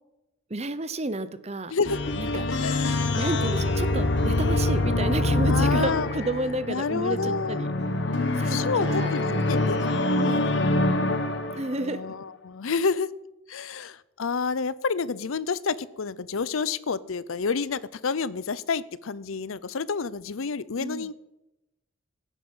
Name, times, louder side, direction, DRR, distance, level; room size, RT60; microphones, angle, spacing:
voice 1, 0.5-1.7 2.2-2.5 3.1-7.7 8.4-9.7 10.2-10.4 11.5-12.0 20.8-21.1, right 2 dB, 30° right, 13 dB, 0.8 m, -31 dB
Meditation Theme, 1.8-11.9, left 2 dB, 55° left, 1.3 m, -25 dB
voice 2, 2.3-3.1 5.5-6.1 6.7-7.7 8.5-9.8 10.2-11.0 11.8-13.1 13.5-21.1, left 5 dB, 80° left, 18 dB, 0.6 m, -29 dB
16.0 x 9.3 x 5.6 m, 0.95 s
head